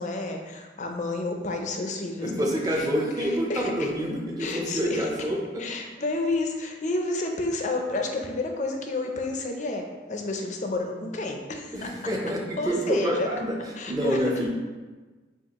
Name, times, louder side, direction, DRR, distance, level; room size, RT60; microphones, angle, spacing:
voice 1, 0.0-2.9 3.2-3.9 4.4-5.1 5.6-11.9 12.6-13.3 13.8-14.2, left 2 dB, 45° left, 3 dB, 0.5 m, -30 dB
voice 2, 2.2-5.6 11.7-13.5 13.8-14.5, equal, 20° right, -1 dB, 0.6 m, -27 dB
6.1 x 2.4 x 2.9 m, 1.3 s
head